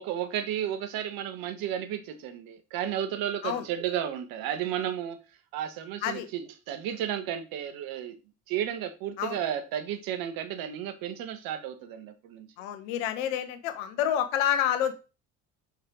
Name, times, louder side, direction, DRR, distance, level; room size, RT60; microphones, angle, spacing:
voice 1, 0.0-5.2 5.5-8.2 8.5-12.5, right 10 dB, 65° right, 1.4 m, -33 dB
voice 2, 12.6-14.9, left 10 dB, 70° left, 1.3 m, -28 dB
6.5 x 5.5 x 3.7 m
hypercardioid pair, 65°, 38 cm